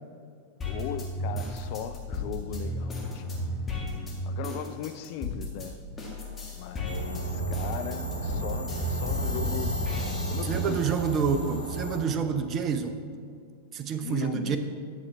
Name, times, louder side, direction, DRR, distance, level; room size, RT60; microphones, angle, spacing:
voice 1, 0.6-3.4 4.2-5.8 6.5-9.7 10.0-10.8 14.0-14.6, left 9 dB, 45° left, 10 dB, 0.4 m, -38 dB
sound 1, 0.6-5.7 6.0-11.2 11.6-12.6, left 1 dB, 20° left, 1.9 m, -34 dB
sound 2, 1.4-2.7 4.6-4.7 5.6-7.0 8.8-8.9 9.4-9.5, left 5 dB, 80° left, 2.3 m, -44 dB
sound 3, 6.9-12.0, right 2 dB, 90° right, 1.1 m, -33 dB
voice 2, 10.4-13.0 13.7-14.6, right 6 dB, 30° right, 8 dB, 0.6 m, -28 dB
11.0 x 7.1 x 3.5 m, 2.3 s
figure-of-eight pair, 90°, 0 cm